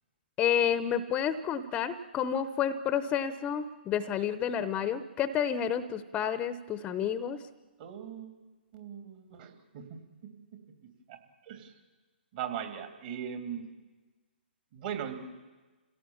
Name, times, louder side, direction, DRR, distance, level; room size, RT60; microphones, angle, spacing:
voice 1, 0.4-7.4, left 8 dB, 20° left, 13 dB, 0.8 m, -30 dB
voice 2, 7.8-8.4 8.7-10.3 10.8-11.7 12.3-13.7 14.7-15.3, right 8 dB, 45° right, 5 dB, 3.1 m, -40 dB
28.5 x 17.0 x 7.3 m, 1.3 s
hypercardioid pair, 135°, 6 cm